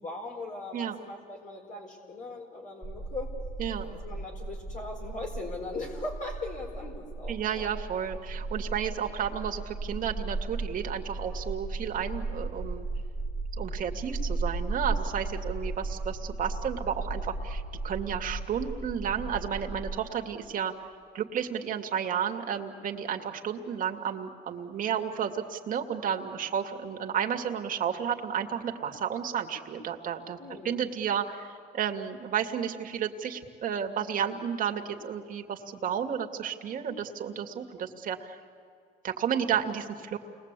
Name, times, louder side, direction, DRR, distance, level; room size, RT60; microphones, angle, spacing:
voice 1, 0.0-3.4 3.8-7.7 30.4-30.9, left 2 dB, 50° left, 0 dB, 4.3 m, -39 dB
sound 1, 2.8-20.0, right 3 dB, 10° right, 1.4 m, -36 dB
voice 2, 7.3-12.9 13.6-20.7 21.1-30.4 30.6-38.4 39.0-40.2, right 8 dB, 55° right, 4 dB, 2.3 m, -32 dB
29.5 x 21.0 x 8.4 m, 2.4 s
cardioid pair, 110°, 17 cm